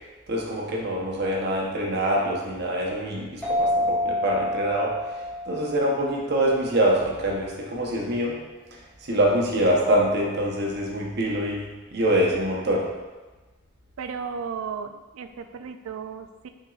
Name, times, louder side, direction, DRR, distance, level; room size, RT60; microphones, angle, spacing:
voice 1, 0.3-8.4 9.0-12.9, right 1 dB, 55° right, -2 dB, 0.9 m, -25 dB
sound 1, 3.4-6.7, left 1 dB, 5° left, 0.9 m, -28 dB
voice 2, 14.0-16.5, right 6 dB, 90° right, 8 dB, 0.4 m, -35 dB
5.8 x 3.7 x 2.4 m, 1.2 s
head